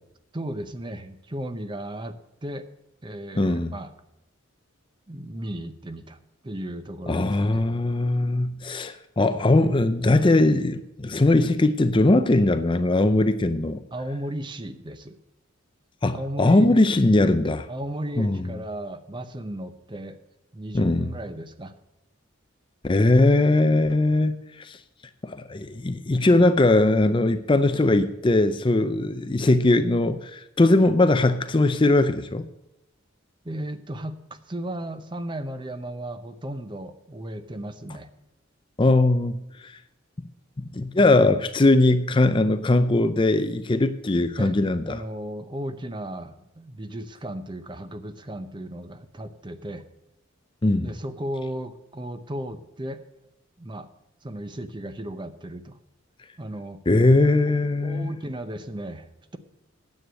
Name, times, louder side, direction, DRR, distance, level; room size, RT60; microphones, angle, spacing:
voice 1, 0.3-2.7 3.0-3.9 5.1-7.6 13.9-15.2 16.1-16.8 17.2-17.3 17.7-20.2 20.5-21.7 33.4-38.1 44.4-44.6 44.8-49.8 50.8-53.0 53.6-53.9 54.2-55.8 56.4-56.8 57.5-57.6 57.8-59.4, right 1 dB, 25° right, 0.7 m, -35 dB
voice 2, 3.4-3.7 7.1-13.8 16.0-17.6 18.2-18.5 20.7-21.1 22.8-24.8 25.2-32.4 38.8-39.4 39.6-39.7 40.7-45.0 50.6-50.9 56.9-58.1, left 2 dB, 25° left, 0.5 m, -20 dB
9.7 x 7.9 x 7.6 m
head